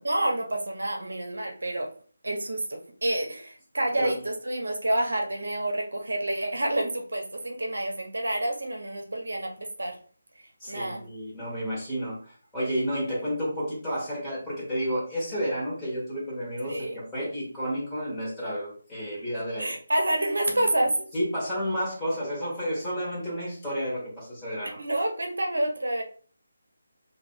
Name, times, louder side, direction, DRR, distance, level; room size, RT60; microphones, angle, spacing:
voice 1, 0.0-1.9 2.2-9.9 10.7-11.0 16.6-17.0 19.4-20.9 24.6-26.0, right 1 dB, 70° right, 2 dB, 0.7 m, -28 dB
voice 2, 10.6-19.7 21.1-24.8, equal, 10° left, -8 dB, 1.5 m, -31 dB
3.2 x 2.6 x 2.5 m, 0.43 s
figure-of-eight pair, 155°, 0 cm